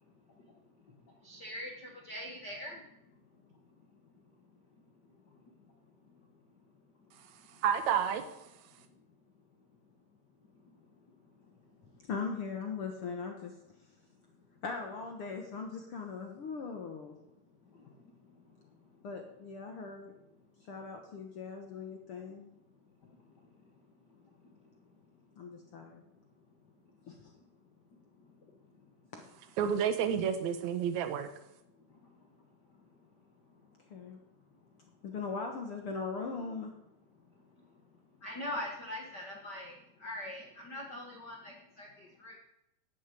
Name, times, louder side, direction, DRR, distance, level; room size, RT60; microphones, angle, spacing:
voice 1, 1.2-1.7 2.0-2.8 38.2-39.7 40.0-42.4, left 1 dB, 50° left, 0 dB, 1.3 m, -42 dB
voice 2, 7.6-8.2 29.6-31.3, right 8 dB, 60° right, 8 dB, 2.1 m, -30 dB
voice 3, 12.0-13.5 14.6-17.1 19.0-20.1 20.7-22.5 25.4-26.0 27.1-27.3 29.1-29.2 33.9-34.2 35.0-36.7, left 5 dB, 85° left, 3 dB, 1.2 m, -40 dB
10.5 x 10.0 x 8.3 m, 0.87 s
omnidirectional pair, 4.6 m